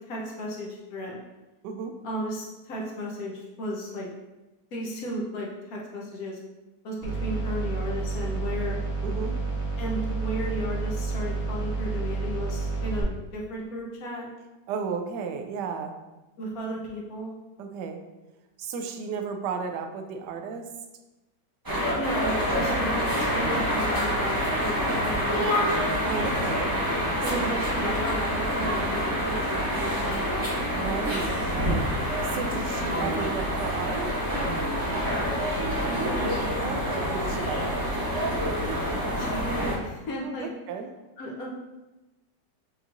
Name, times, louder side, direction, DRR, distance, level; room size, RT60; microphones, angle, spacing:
voice 1, 0.0-1.2 2.0-4.1 4.7-6.4 6.8-8.8 9.8-14.3 16.4-17.3 21.9-25.8 27.2-30.5 35.7-36.5 39.2-40.5 41.2-41.5, equal, 60° left, -2 dB, 1.2 m, -34 dB
voice 2, 1.6-2.0 9.0-9.4 14.7-15.9 17.6-18.0 18.6-20.7 26.0-26.8 27.3-27.4 30.7-31.8 32.3-34.1 36.6-37.9 40.2-40.9, right 5 dB, 75° right, 5 dB, 1.1 m, -33 dB
sound 1, 7.0-13.0, right 4 dB, 45° right, 1.1 m, -30 dB
sound 2, 21.7-39.8, equal, 15° right, 0.7 m, -27 dB
6.2 x 3.1 x 2.5 m, 1.1 s
omnidirectional pair, 1.9 m